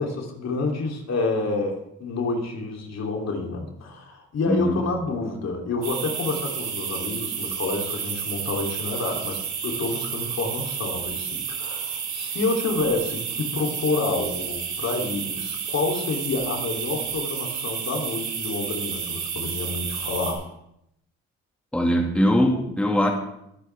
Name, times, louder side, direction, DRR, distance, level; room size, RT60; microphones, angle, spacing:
voice 1, 0.0-20.5, left 3 dB, 60° left, 0 dB, 3.2 m, -28 dB
voice 2, 4.5-4.8 21.7-23.1, equal, 5° left, 1 dB, 2.0 m, -21 dB
sound 1, 5.8-20.3, right 7 dB, 85° right, 4.2 m, -31 dB
22.0 x 9.2 x 3.5 m, 0.77 s
cardioid pair, 90°, 30 cm